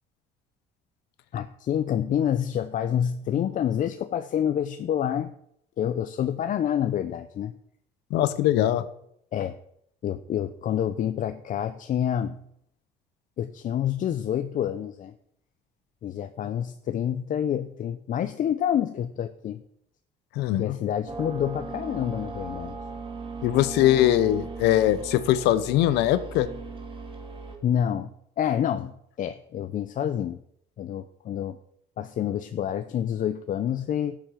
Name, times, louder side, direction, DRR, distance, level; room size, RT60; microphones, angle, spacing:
voice 1, 1.3-5.3 5.8-7.5 9.3-9.6 10.0-12.4 13.4-15.1 16.0-19.6 20.6-22.8 27.6-30.4 30.8-31.6 32.0-34.2, left 9 dB, 50° left, 10 dB, 0.7 m, -28 dB
voice 2, 8.1-8.8 20.3-20.8 23.4-26.5, left 13 dB, 90° left, 14 dB, 1.0 m, -21 dB
sound 1, 21.1-27.6, right 3 dB, 30° right, 2.3 m, -38 dB
12.0 x 7.6 x 5.9 m, 0.71 s
cardioid pair, 110°, 17 cm